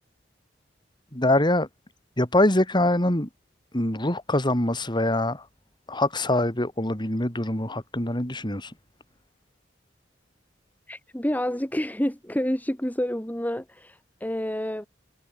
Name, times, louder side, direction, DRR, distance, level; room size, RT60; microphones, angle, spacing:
voice 1, 1.1-1.7 2.2-3.3 3.7-5.5 5.9-8.7, left 1 dB, 25° left, 3.6 m, -24 dB
voice 2, 10.9-14.9, equal, 10° left, 1.6 m, -28 dB
head